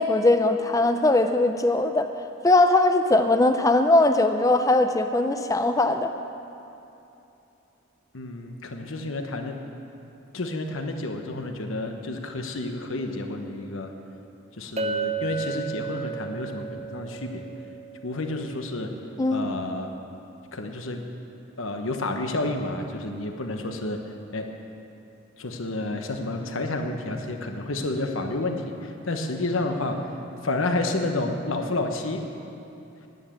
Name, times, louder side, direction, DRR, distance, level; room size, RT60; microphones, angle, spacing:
voice 1, 0.0-2.1 2.4-6.1 19.2-19.5, left 2 dB, 15° left, 7 dB, 0.5 m, -20 dB
voice 2, 8.1-9.6 10.3-13.9 14.6-17.4 18.0-18.9 19.3-19.9 20.5-21.0 21.6-24.0 24.3-24.5 25.4-30.0 30.4-32.2, left 2 dB, 75° left, 4 dB, 1.2 m, -30 dB
Chink clink, 14.8-19.0, right 5 dB, 30° right, 0.6 m, -33 dB
10.5 x 9.3 x 8.8 m, 2.8 s
head